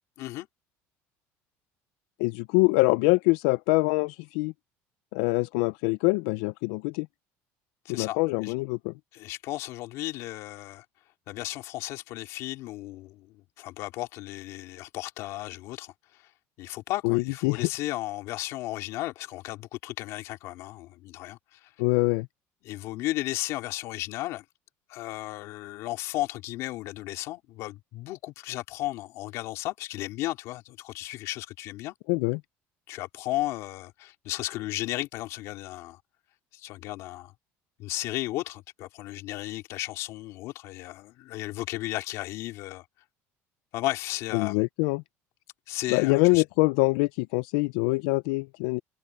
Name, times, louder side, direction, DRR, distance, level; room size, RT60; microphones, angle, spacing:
voice 1, 2.2-4.5 5.1-7.1 7.9-8.9 17.0-17.7 21.8-22.3 32.1-32.4 44.3-45.0 45.9-48.8, left 25 dB, 90° left, 0.4 m, -24 dB
voice 2, 7.8-8.5 9.1-10.8 11.3-16.3 16.6-21.7 22.6-24.4 24.9-31.9 32.9-36.0 36.5-37.3 37.8-42.8 43.7-44.6 45.7-46.4, left 17 dB, 55° left, 3.2 m, -34 dB
cardioid pair, 175°, 6 cm